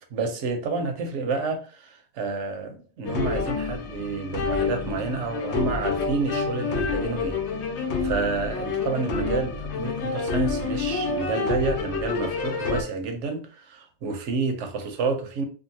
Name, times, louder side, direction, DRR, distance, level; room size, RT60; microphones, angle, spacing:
voice 1, 0.1-7.4 7.7-15.5, right 4 dB, 80° right, 1.0 m, -29 dB
sound 1, 3.0-12.8, left 4 dB, 75° left, 0.9 m, -28 dB
2.7 x 2.5 x 2.7 m
omnidirectional pair, 1.2 m